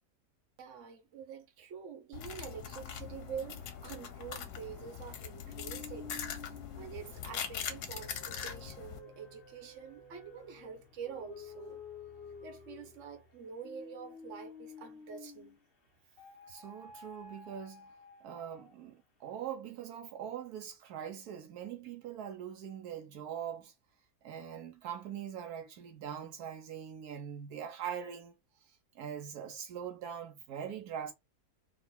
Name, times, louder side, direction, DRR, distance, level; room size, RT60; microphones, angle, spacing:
voice 1, 0.6-11.8 12.4-15.6, right 7 dB, 55° right, 1.2 m, -46 dB
sound 1, 2.1-9.0, left 8 dB, 85° left, 1.4 m, -42 dB
sound 2, 5.4-15.6 16.2-18.9, left 4 dB, 40° left, 1.2 m, -51 dB
voice 2, 16.5-17.9 18.2-23.7 24.2-28.3 28.9-31.1, right 9 dB, 80° right, 1.3 m, -42 dB
3.9 x 2.5 x 4.2 m
omnidirectional pair, 1.6 m